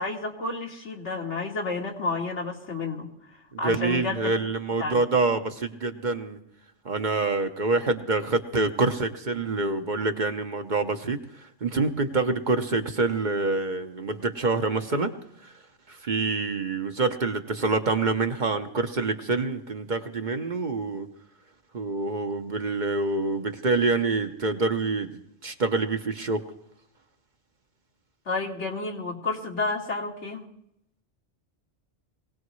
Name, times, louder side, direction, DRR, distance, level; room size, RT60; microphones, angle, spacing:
voice 1, 0.0-3.1 3.6-4.3 4.8-5.0 28.3-30.4, left 3 dB, 80° left, 0 dB, 2.2 m, -30 dB
voice 2, 3.5-6.4 6.8-11.2 11.6-15.1 15.4-15.5 15.9-21.1 21.7-25.1 25.4-26.4, right 3 dB, 45° right, 6 dB, 0.9 m, -26 dB
22.0 x 17.5 x 3.1 m, 0.77 s
omnidirectional pair, 1.2 m